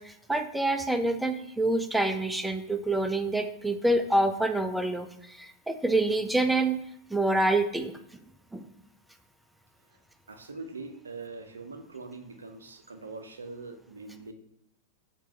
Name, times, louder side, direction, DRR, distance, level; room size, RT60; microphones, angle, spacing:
voice 1, 0.0-5.1 5.4-6.8 7.1-7.9 8.5-8.6, right 2 dB, 5° right, 8 dB, 0.3 m, -26 dB
voice 2, 10.3-14.3, right 3 dB, 75° right, 7 dB, 0.4 m, -42 dB
4.6 x 2.2 x 3.6 m, 0.74 s
figure-of-eight pair, 90°, 0 cm